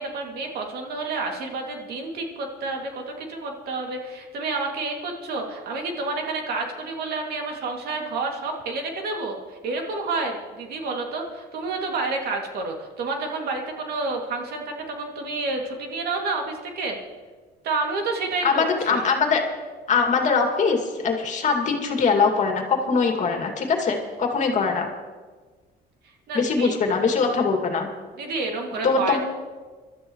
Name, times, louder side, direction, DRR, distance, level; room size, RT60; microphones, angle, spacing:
voice 1, 0.0-17.0 17.6-19.1 26.3-26.7 28.2-29.2, right 3 dB, 70° right, 1 dB, 2.5 m, -29 dB
voice 2, 18.4-19.4 19.9-24.9 26.3-27.9 28.8-29.2, left 5 dB, 45° left, 2 dB, 2.4 m, -22 dB
24.0 x 13.0 x 3.2 m, 1.4 s
cardioid pair, 110°, 17 cm